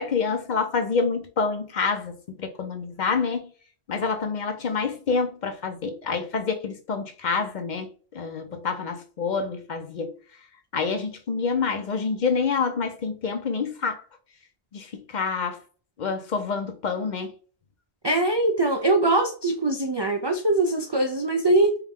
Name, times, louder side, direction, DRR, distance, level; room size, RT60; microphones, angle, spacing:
voice 1, 0.0-3.5 3.9-10.1 10.7-14.0 14.7-15.6 16.0-17.3, left 5 dB, 50° left, 0.7 m, -27 dB
voice 2, 18.0-21.8, right 2 dB, 45° right, 0.3 m, -22 dB
4.6 x 2.2 x 3.5 m
omnidirectional pair, 1.1 m